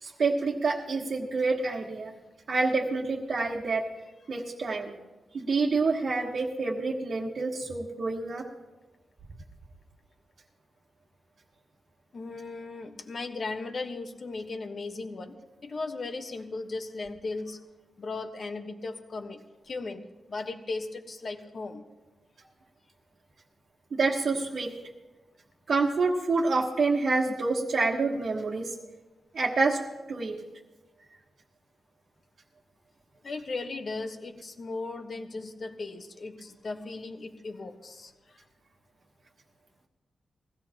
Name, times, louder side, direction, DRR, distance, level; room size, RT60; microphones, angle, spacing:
voice 1, 0.0-2.1 2.5-3.8 4.3-4.9 5.3-8.4 23.9-24.7 25.7-28.7 29.3-29.8 30.1-30.4, right 3 dB, 55° right, -5 dB, 1.4 m, -27 dB
voice 2, 12.1-17.6 18.0-21.8 33.2-38.4, left 3 dB, 50° left, 6 dB, 1.2 m, -37 dB
21.0 x 16.0 x 3.0 m, 1.1 s
cardioid pair, 95°, 0 cm